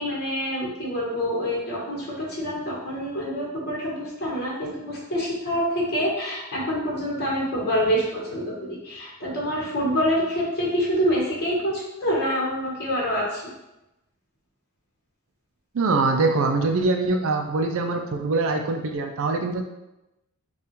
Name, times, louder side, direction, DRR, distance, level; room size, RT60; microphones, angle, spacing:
voice 1, 0.0-13.5, equal, 45° left, -4 dB, 1.1 m, -26 dB
voice 2, 15.7-19.6, right 3 dB, 60° right, 5 dB, 0.4 m, -23 dB
5.6 x 2.4 x 3.0 m, 0.93 s
head